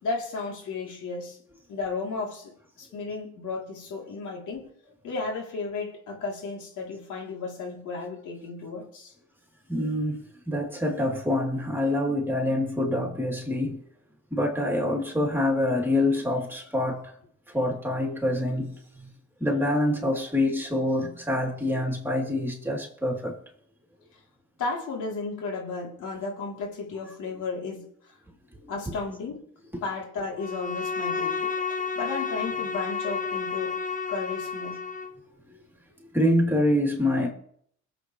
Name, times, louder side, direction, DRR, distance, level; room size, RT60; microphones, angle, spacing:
voice 1, 0.0-1.4 1.7-2.5 2.8-4.6 5.0-9.1 24.6-28.1 28.7-29.4 29.8-31.5 32.0-33.8 34.1-34.8, left 4 dB, 80° left, 3.5 m, -34 dB
voice 2, 9.7-13.8 14.3-17.0 17.5-18.7 19.4-23.3 36.1-37.3, left 1 dB, 5° right, 3.4 m, -26 dB
Bowed string instrument, 30.4-35.2, left 5 dB, 25° left, 0.9 m, -31 dB
21.5 x 7.9 x 3.3 m
cardioid pair, 90°, 30 cm